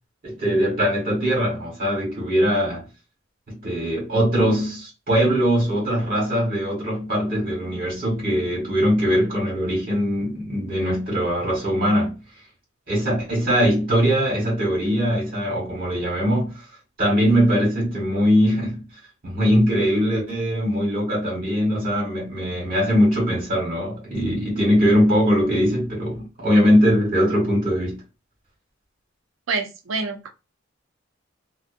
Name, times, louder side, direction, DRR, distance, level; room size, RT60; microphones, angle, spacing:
voice 1, 0.2-2.9 3.5-12.1 12.9-16.5 17.0-18.8 19.2-28.0, equal, 45° right, 1.2 m, -21 dB
voice 2, 29.5-30.3, right 4 dB, 80° right, 0.5 m, -27 dB
2.6 x 2.1 x 2.5 m
head